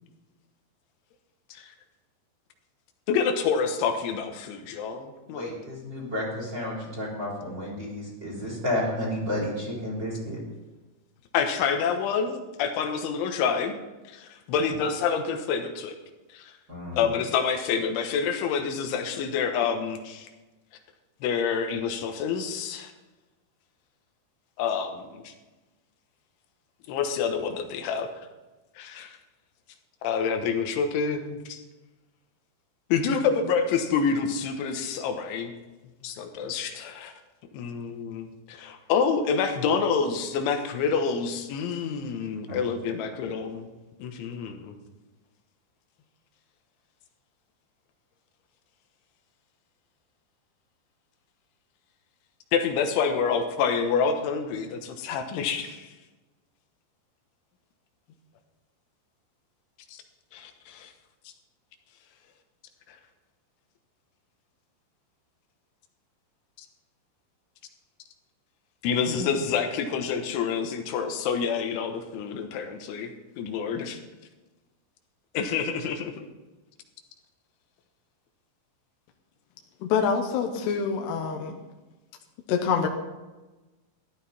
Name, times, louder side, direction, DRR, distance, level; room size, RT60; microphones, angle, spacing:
voice 1, 3.1-5.5 11.3-13.7 14.1-15.9 16.3-16.5 16.9-20.3 21.2-22.9 24.6-25.3 26.9-28.3 28.8-29.2 30.0-31.6 32.9-35.5 36.0-37.1 37.5-43.7 44.0-44.8 52.5-55.9 59.9-60.0 60.3-60.9 62.9-63.0 68.8-73.1 73.4-74.0 75.4-76.1, left 6 dB, 90° left, 5 dB, 3.6 m, -27 dB
voice 2, 5.3-10.4 16.7-17.0 42.5-42.6, left 1 dB, 25° right, -3 dB, 3.7 m, -31 dB
voice 3, 79.8-81.6 82.5-82.9, left 6 dB, 75° left, 3 dB, 2.8 m, -26 dB
14.0 x 11.5 x 4.3 m, 1.1 s
omnidirectional pair, 5.3 m